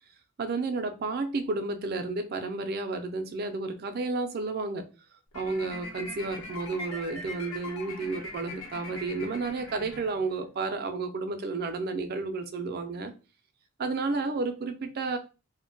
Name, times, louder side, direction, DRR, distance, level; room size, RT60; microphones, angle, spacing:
voice 1, 0.4-4.9 5.3-13.1 13.8-15.2, right 3 dB, 45° right, 0.4 m, -31 dB
sound 1, 5.3-10.6, left 2 dB, 75° left, 0.9 m, -42 dB
2.1 x 2.1 x 3.8 m
head